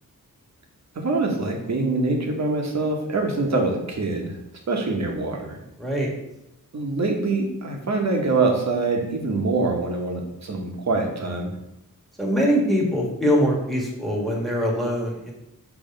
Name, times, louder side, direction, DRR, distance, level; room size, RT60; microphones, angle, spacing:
voice 1, 0.9-4.3 4.7-5.6 6.7-11.5, right 3 dB, 55° right, 2 dB, 1.2 m, -24 dB
voice 2, 5.8-6.1 12.2-15.3, equal, ahead, -2 dB, 1.6 m, -23 dB
7.1 x 3.4 x 5.2 m, 0.86 s
wide cardioid pair, 145°, 33 cm